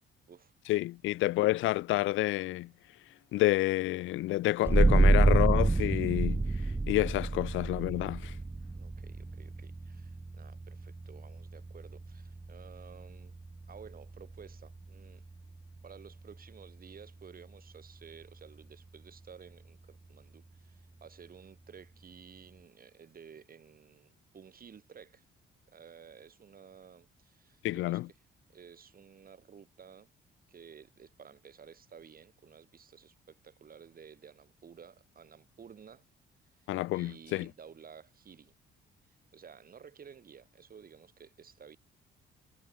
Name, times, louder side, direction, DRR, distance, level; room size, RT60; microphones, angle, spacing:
voice 1, 0.7-2.7 3.3-6.5 6.9-8.4 27.6-28.1 36.7-37.5, left 17 dB, 85° left, 0.5 m, -29 dB
sound 1, 4.6-15.9, right 3 dB, 10° right, 0.4 m, -29 dB
voice 2, 8.7-13.4 13.7-15.2 15.8-25.2 25.7-28.0 28.5-30.1 30.5-36.0 36.9-38.5 39.1-41.8, right 7 dB, 45° right, 4.9 m, -53 dB
cardioid pair, 90°, 20 cm